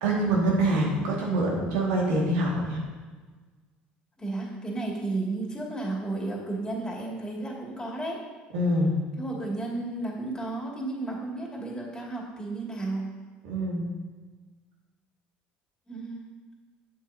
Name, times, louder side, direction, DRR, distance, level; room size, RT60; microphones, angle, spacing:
voice 1, 0.0-2.8 8.5-9.0 13.4-13.9, right 1 dB, 75° right, -3 dB, 2.0 m, -25 dB
voice 2, 4.2-8.2 9.2-13.1 15.9-16.2, right 2 dB, 15° left, -2 dB, 2.3 m, -33 dB
7.8 x 7.5 x 2.8 m, 1.4 s
hypercardioid pair, 75°, 5 cm